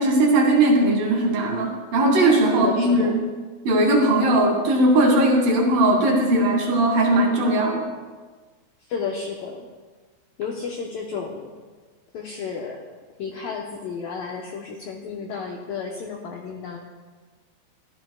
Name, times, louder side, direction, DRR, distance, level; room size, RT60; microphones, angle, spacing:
voice 1, 0.0-3.2 3.6-7.8, right 1 dB, 55° right, -1 dB, 3.6 m, -19 dB
voice 2, 2.5-3.2 8.9-9.7 10.4-11.5 12.1-12.9 13.2-16.8, left 5 dB, 90° left, 0 dB, 2.0 m, -32 dB
24.5 x 14.5 x 2.4 m, 1.4 s
omnidirectional pair, 5.5 m